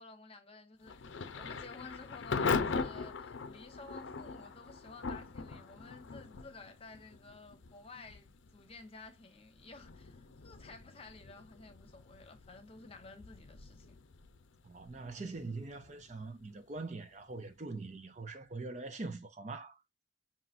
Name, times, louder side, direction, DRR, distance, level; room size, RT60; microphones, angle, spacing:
voice 1, 0.0-14.0, left 3 dB, 30° left, 0.9 m, -53 dB
Thunder / Rain, 0.8-17.6, left 4 dB, 80° left, 0.6 m, -41 dB
voice 2, 14.6-19.8, right 3 dB, 40° right, 0.5 m, -43 dB
5.7 x 3.0 x 2.5 m
head